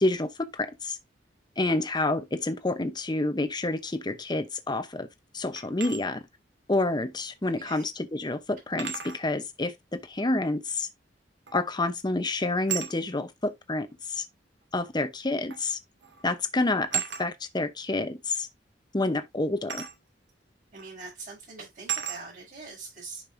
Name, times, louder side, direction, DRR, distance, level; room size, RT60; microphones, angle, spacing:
voice 1, 0.0-1.0 1.6-5.1 5.3-6.2 6.7-10.9 11.5-14.2 14.7-15.8 16.2-18.5 18.9-19.9, left 2 dB, 25° left, 0.8 m, -28 dB
sound 1, 5.6-6.0 7.5-7.6 8.8-9.2 11.5-11.8 12.7-13.0 14.1-14.2 15.5-15.7 16.0-16.3 16.9-17.3 19.7-20.0 20.8-20.9 21.9-22.2, right 8 dB, 80° right, 2.3 m, -33 dB
voice 2, 7.4-7.9 20.7-23.2, right 4 dB, 45° right, 6.1 m, -43 dB
10.5 x 5.5 x 2.7 m
head